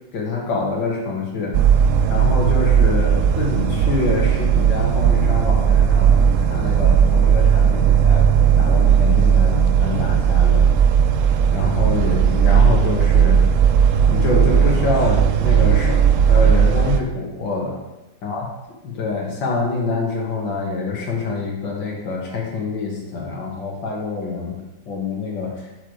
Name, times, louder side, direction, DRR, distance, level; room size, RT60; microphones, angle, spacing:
voice 1, 0.1-1.5 2.1-10.7 11.5-13.4 14.1-17.8 18.2-18.5 18.8-24.6 24.9-25.7, left 3 dB, 80° left, -1 dB, 2.4 m, -25 dB
sound 1, 1.5-17.0, right 8 dB, 80° right, 0.7 m, -16 dB
11.0 x 6.6 x 3.2 m, 1.0 s
omnidirectional pair, 2.0 m